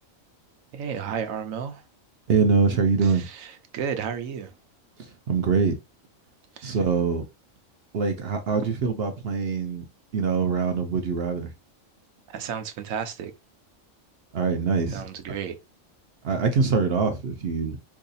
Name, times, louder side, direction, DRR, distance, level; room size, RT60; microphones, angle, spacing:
voice 1, 0.7-1.8 3.0-4.5 6.6-6.8 12.3-13.3 14.9-15.6, right 7 dB, 85° right, 1.1 m, -33 dB
voice 2, 2.3-3.2 5.0-5.7 6.6-7.2 7.9-9.8 10.1-11.5 14.3-15.1 16.2-17.8, right 5 dB, 60° right, 0.7 m, -24 dB
4.7 x 2.7 x 2.3 m
omnidirectional pair, 1.4 m